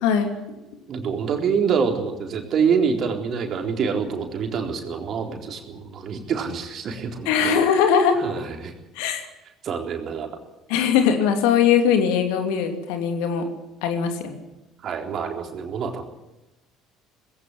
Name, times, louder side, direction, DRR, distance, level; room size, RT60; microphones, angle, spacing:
voice 1, 0.0-0.3 7.2-8.2 8.9-9.3 10.7-13.5 13.8-14.4, left 7 dB, 65° left, 6 dB, 2.9 m, -20 dB
voice 2, 0.9-7.5 8.2-8.7 9.6-10.3 14.8-16.0, right 6 dB, 45° right, 3 dB, 3.9 m, -26 dB
20.5 x 16.5 x 9.9 m, 0.99 s
figure-of-eight pair, 60°, 0 cm